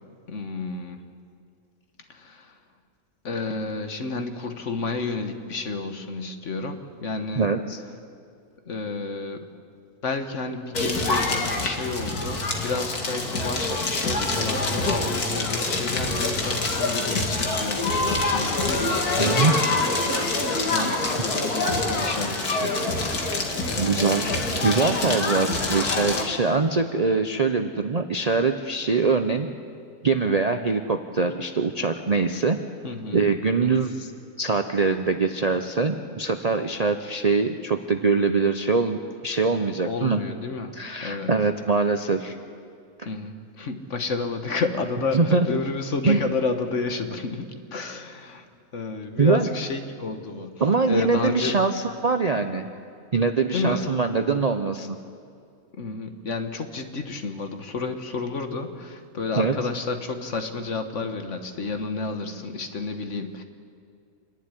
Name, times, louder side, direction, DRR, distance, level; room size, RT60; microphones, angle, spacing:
voice 1, 0.3-1.0 2.1-2.5 3.2-7.5 8.7-9.5 10.0-20.3 20.7-23.0 32.8-33.2 33.6-33.8 39.8-40.7 41.0-41.3 43.0-48.4 48.7-50.5 50.9-51.6 53.5-53.9 54.2-54.4 55.8-63.4, left 4 dB, 55° left, 7 dB, 1.6 m, -31 dB
voice 2, 7.3-7.8 19.2-19.6 23.7-29.5 30.0-32.6 33.1-34.1 34.4-40.2 40.7-42.4 43.0-43.1 45.1-45.6 46.0-46.2 49.2-49.5 50.6-52.7 53.1-54.9 59.4-59.6, right 4 dB, 40° right, 7 dB, 0.6 m, -23 dB
Crackle, 10.7-26.2, left 2 dB, 85° left, 2.6 m, -25 dB
26.5 x 11.0 x 9.8 m, 2.3 s
omnidirectional pair, 1.6 m